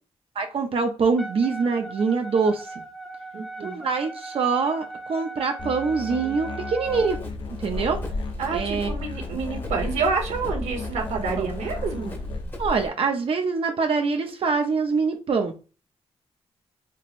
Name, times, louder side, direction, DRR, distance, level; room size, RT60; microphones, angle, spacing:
voice 1, 0.4-2.7 3.6-7.2 7.6-8.0 8.5-8.9 11.4-11.5 12.6-15.5, right 4 dB, 55° right, 4 dB, 0.7 m, -24 dB
Wind instrument woodwind instrument, 1.2-7.2, right 2 dB, 5° left, 0.6 m, -38 dB
voice 2, 3.3-3.8 6.2-6.4 8.4-12.2, right 5 dB, 90° right, 3 dB, 1.1 m, -28 dB
Musical instrument, 5.6-12.4, left 4 dB, 45° left, 0.5 m, -37 dB
Run, 6.8-12.9, left 1 dB, 20° left, 1.0 m, -34 dB
3.5 x 3.0 x 2.5 m, 0.32 s
cardioid pair, 110°, 11 cm